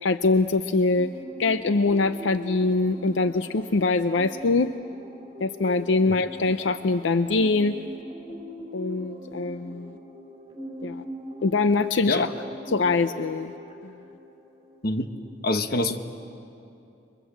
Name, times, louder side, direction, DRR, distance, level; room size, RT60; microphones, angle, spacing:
voice 1, 0.0-1.1 1.4-4.7 5.4-7.8 8.7-9.9 10.8-11.0 11.4-12.3 12.7-13.5 13.8-13.9, left 3 dB, 85° left, 10 dB, 0.6 m, -23 dB
sound 1, 0.9-15.3, equal, 25° right, 4.6 m, -41 dB
voice 2, 15.4-16.0, left 2 dB, 55° left, 7 dB, 1.2 m, -24 dB
29.5 x 24.0 x 7.6 m, 2.7 s
head